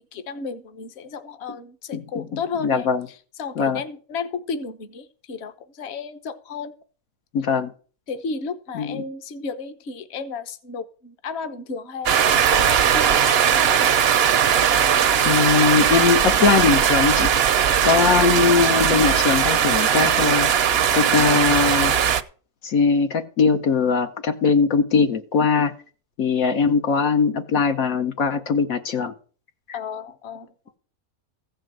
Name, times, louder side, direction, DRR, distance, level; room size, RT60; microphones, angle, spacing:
voice 1, 0.1-6.7 8.1-13.6 29.7-30.5, left 5 dB, 50° left, 1.2 m, -33 dB
voice 2, 1.9-2.2 2.6-3.0 3.6-3.8 7.3-7.7 8.7-9.0 15.2-17.3 17.8-20.5 20.9-21.9 22.6-25.7 26.2-29.1 29.7-29.8, left 5 dB, 70° left, 1.3 m, -20 dB
sound 1, 12.1-22.2, right 8 dB, 55° right, 0.8 m, -19 dB
15.0 x 5.1 x 7.6 m
omnidirectional pair, 1.5 m